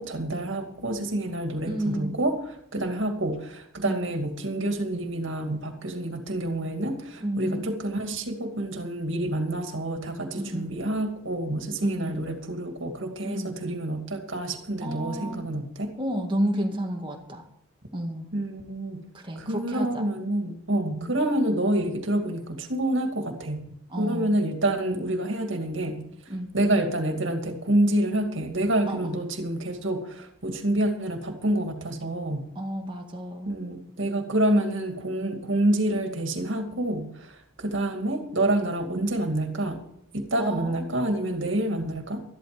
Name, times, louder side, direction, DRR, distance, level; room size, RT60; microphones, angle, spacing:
voice 1, 0.0-2.3 2.7-15.9 18.3-19.0 19.4-26.1 26.5-32.4 33.4-39.8 40.1-42.2, right 1 dB, 60° right, 5 dB, 2.4 m, -28 dB
voice 2, 1.7-2.2 3.9-4.1 7.2-7.7 10.4-10.7 11.8-12.3 13.2-13.6 14.8-15.5 16.0-17.4 17.9-18.3 19.1-20.0 21.0-21.1 23.9-24.3 26.3-26.5 28.9-29.2 32.6-33.6 40.4-40.9, right 1 dB, 25° right, 2 dB, 2.0 m, -31 dB
13.5 x 12.0 x 5.2 m, 0.71 s
head